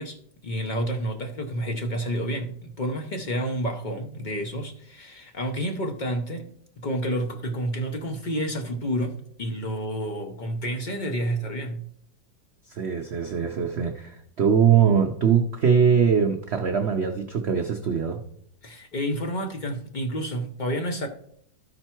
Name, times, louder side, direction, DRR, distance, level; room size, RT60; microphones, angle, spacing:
voice 1, 0.0-6.5 6.8-11.8 18.6-21.1, equal, 75° left, 4 dB, 0.4 m, -30 dB
voice 2, 12.7-18.2, right 7 dB, 90° right, 5 dB, 0.5 m, -22 dB
13.0 x 4.5 x 4.4 m, 0.66 s
omnidirectional pair, 2.0 m